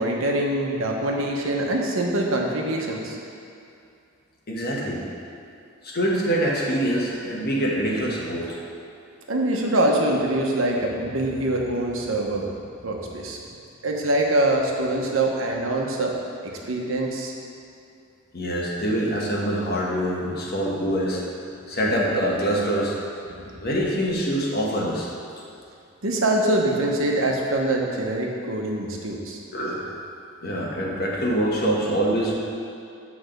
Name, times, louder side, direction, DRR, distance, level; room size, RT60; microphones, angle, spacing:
voice 1, 0.0-3.2 9.3-12.4 12.8-13.4 13.8-16.1 16.7-17.3 23.4-23.6 26.0-29.4, right 1 dB, 70° right, -1 dB, 1.0 m, -24 dB
voice 2, 4.5-5.0 5.8-8.6 18.3-21.2 21.7-23.0 23.6-25.1 29.5-29.9 30.4-32.3, right 1 dB, 50° left, -3 dB, 1.2 m, -24 dB
8.3 x 3.5 x 6.5 m, 2.5 s
head